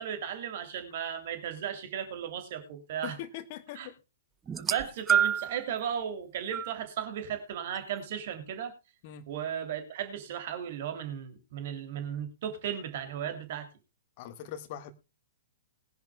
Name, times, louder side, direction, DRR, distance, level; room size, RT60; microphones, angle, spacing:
voice 1, 0.0-3.2 3.7-3.9 4.6-8.7 9.3-13.7, right 9 dB, 45° right, 3.0 m, -35 dB
voice 2, 3.0-3.9 9.0-9.2 14.2-14.9, left 11 dB, 40° left, 1.7 m, -41 dB
sound 1, 4.5-5.6 6.5-6.7 7.8-7.9, right 8 dB, 15° right, 0.5 m, -27 dB
21.0 x 10.5 x 2.3 m
figure-of-eight pair, 110°, 0 cm